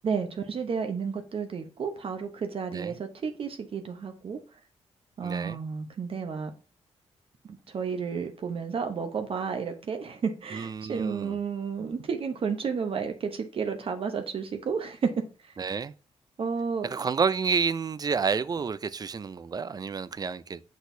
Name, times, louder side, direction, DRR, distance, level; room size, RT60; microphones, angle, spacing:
voice 1, 0.0-4.4 5.2-6.5 7.4-15.1 16.4-16.9, right 6 dB, 55° right, 0.8 m, -32 dB
voice 2, 5.2-5.6 10.5-11.4 15.6-15.9 16.8-20.6, right 5 dB, 35° right, 0.4 m, -29 dB
6.2 x 6.2 x 2.7 m
cardioid pair, 95°, 12 cm